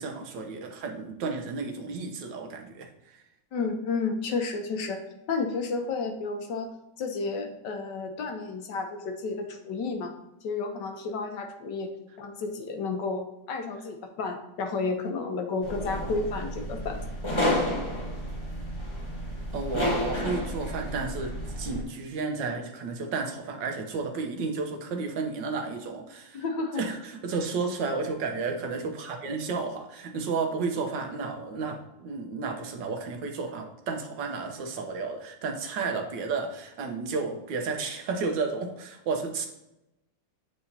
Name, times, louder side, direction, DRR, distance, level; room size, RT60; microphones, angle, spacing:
voice 1, 0.0-3.2 19.5-26.4 26.8-39.5, right 4 dB, 75° right, 4 dB, 1.6 m, -32 dB
voice 2, 3.5-5.0 5.3-10.1 10.4-11.9 12.2-17.0 26.3-26.8, left 4 dB, 70° left, 5 dB, 1.5 m, -31 dB
sound 1, 15.6-21.8, left 1 dB, 20° left, 0.7 m, -31 dB
8.6 x 4.9 x 2.7 m, 0.90 s
omnidirectional pair, 2.0 m